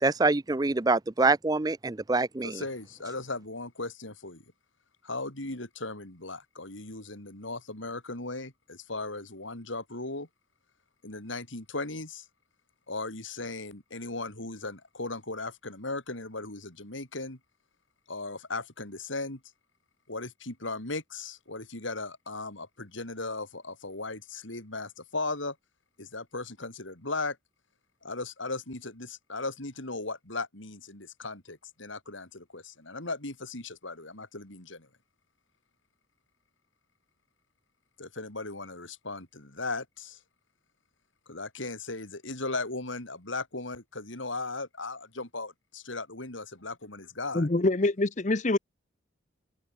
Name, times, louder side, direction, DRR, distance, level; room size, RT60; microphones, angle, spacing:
voice 1, 0.0-2.6, right 3 dB, 20° right, 0.5 m, -25 dB
voice 2, 2.4-4.4 5.0-10.3 11.0-12.2 12.9-17.4 18.1-19.4 20.1-25.6 26.0-27.4 28.0-34.9 38.0-40.2 41.3-47.5, left 3 dB, 75° left, 4.5 m, -37 dB
voice 3, 47.3-48.6, left 2 dB, 35° left, 0.8 m, -25 dB
head